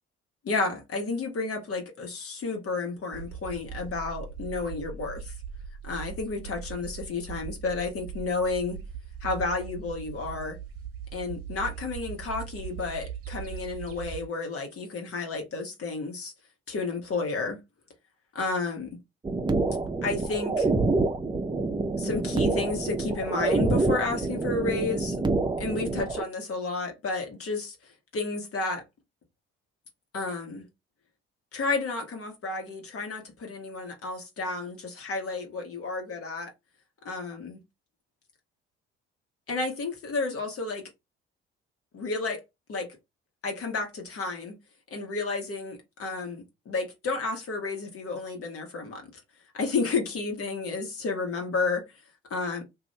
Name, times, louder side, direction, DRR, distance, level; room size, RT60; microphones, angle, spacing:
voice 1, 0.4-5.3 5.8-8.8 9.2-10.6 11.1-16.3 16.7-17.6 18.3-18.9 20.0-20.7 22.0-25.2 25.6-27.8 28.1-28.8 30.1-30.6 31.5-36.5 37.0-37.6 39.5-40.8 41.9-42.4 42.7-42.9 43.4-44.5 44.9-49.2 49.5-51.8 52.3-52.6, left 3 dB, 50° left, 1.3 m, -31 dB
sound 1, 3.1-14.3, right 7 dB, 50° right, 0.9 m, -40 dB
sound 2, 19.2-26.2, right 3 dB, 15° right, 0.6 m, -27 dB
2.6 x 2.6 x 3.2 m
hypercardioid pair, 50°, 30 cm